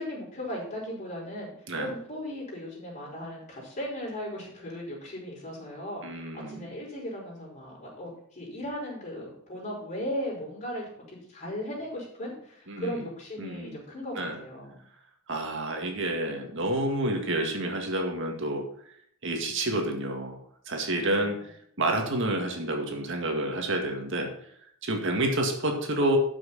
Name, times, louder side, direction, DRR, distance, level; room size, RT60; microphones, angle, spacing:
voice 1, 0.0-14.8 20.9-21.5, equal, 35° left, -4 dB, 5.0 m, -37 dB
voice 2, 6.0-6.7 12.7-13.1 13.4-13.8 14.1-14.4 15.3-18.6 19.2-20.4 20.7-21.4 21.8-24.3 24.8-26.2, right 1 dB, 60° right, 3 dB, 2.0 m, -29 dB
12.5 x 6.3 x 4.3 m, 0.67 s
head